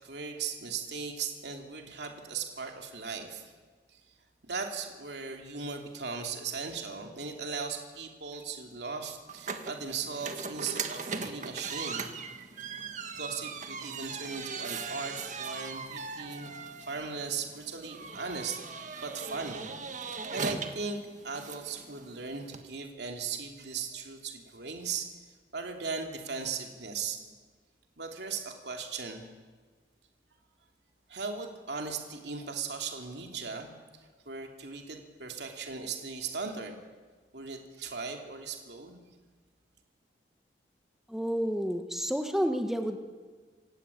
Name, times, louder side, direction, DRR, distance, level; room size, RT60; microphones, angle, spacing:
voice 1, 0.0-3.4 3.9-4.0 4.4-12.1 13.1-16.5 16.8-19.6 20.0-25.1 25.5-27.3 28.0-29.2 31.1-33.7 34.2-36.8 37.3-39.0, right 5 dB, 70° right, 3 dB, 3.0 m, -38 dB
sound 1, 9.3-22.6, right 5 dB, 45° right, 1.7 m, -39 dB
voice 2, 41.1-43.0, equal, ahead, 5 dB, 1.5 m, -30 dB
27.5 x 16.0 x 8.6 m, 1.5 s
head